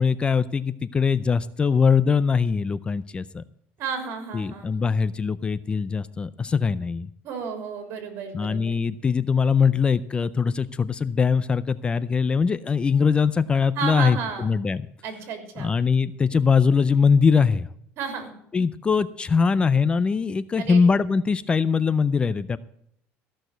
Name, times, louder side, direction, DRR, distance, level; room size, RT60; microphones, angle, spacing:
voice 1, 0.0-3.4 4.3-7.1 8.3-14.9 15.6-17.7 18.5-22.6, left 5 dB, 20° left, 17 dB, 0.4 m, -22 dB
voice 2, 3.8-4.8 7.2-8.8 13.8-14.5 15.0-15.7 18.0-18.3 20.6-20.8, right 6 dB, 60° right, 6 dB, 3.5 m, -32 dB
14.5 x 6.4 x 7.8 m, 0.70 s
cardioid pair, 135°, 5 cm